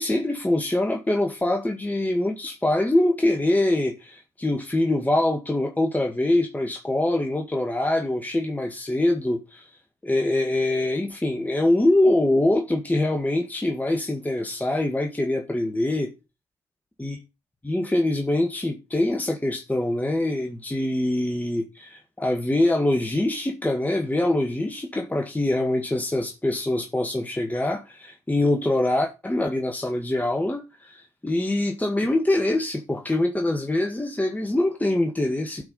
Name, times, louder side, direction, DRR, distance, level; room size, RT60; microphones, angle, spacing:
voice 1, 0.0-9.7 10.0-16.1 17.0-17.2 17.6-35.6, left 1 dB, 15° left, 1.8 m, -24 dB
13.0 x 4.8 x 5.4 m
hypercardioid pair, 45°, 12 cm